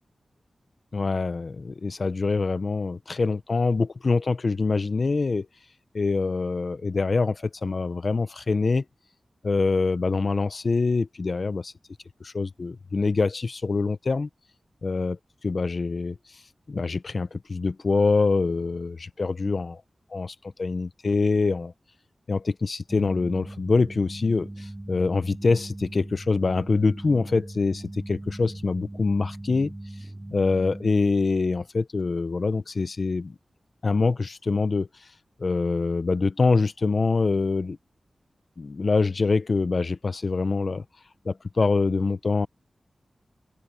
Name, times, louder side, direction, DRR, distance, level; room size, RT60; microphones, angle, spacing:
voice 1, 0.9-5.5 5.9-8.8 9.4-11.7 12.2-14.3 14.8-15.2 15.4-16.2 16.7-19.8 20.1-21.7 22.3-29.7 30.3-33.3 33.8-34.9 35.4-37.8 38.6-40.8 41.2-42.5, left 4 dB, 50° left, 0.8 m, -25 dB
sound 1, 22.9-31.2, right 1 dB, 20° right, 5.0 m, -39 dB
open air
wide cardioid pair, 115°, 0 cm